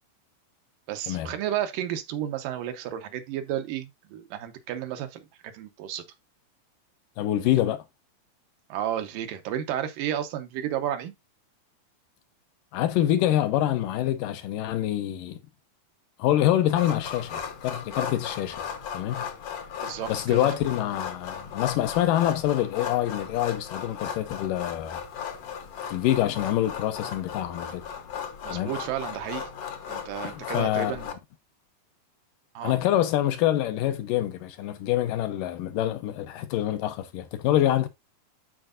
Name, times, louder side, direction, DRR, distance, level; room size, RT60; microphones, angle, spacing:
voice 1, 0.9-5.3 5.5-6.0 8.7-11.1 19.8-20.5 28.4-29.5 29.9-31.1 32.5-32.8, right 11 dB, 75° right, 2.5 m, -32 dB
voice 2, 7.2-7.8 12.7-15.4 16.2-18.7 18.9-19.3 20.1-25.0 25.9-27.8 28.5-28.7 30.2-31.0 32.6-37.9, left 12 dB, 75° left, 2.4 m, -26 dB
sound 1, 16.7-31.1, left 7 dB, 60° left, 1.8 m, -36 dB
12.5 x 4.5 x 2.5 m
omnidirectional pair, 4.0 m